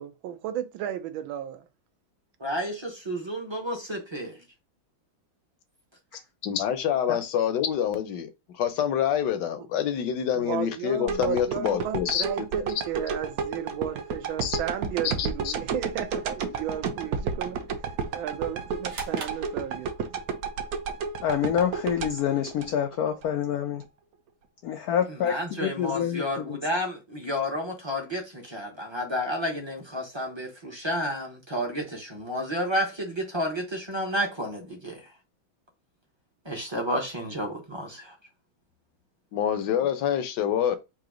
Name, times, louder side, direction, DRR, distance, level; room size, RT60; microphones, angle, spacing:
voice 1, 0.0-1.6 10.3-17.6 18.1-20.2, right 10 dB, 85° right, 1.5 m, -34 dB
voice 2, 2.4-4.4 25.2-35.0 36.4-38.1, equal, 25° right, 0.6 m, -31 dB
voice 3, 6.4-12.3 14.4-14.6 15.0-15.5 39.3-40.8, left 9 dB, 70° left, 1.2 m, -26 dB
sound 1, 11.1-23.3 23.7-23.8, right 5 dB, 70° right, 0.9 m, -32 dB
sound 2, 18.9-20.3, right 4 dB, 45° right, 1.0 m, -42 dB
voice 4, 21.2-23.8 24.6-26.6, left 9 dB, 85° left, 0.8 m, -27 dB
3.9 x 2.8 x 4.8 m
omnidirectional pair, 2.1 m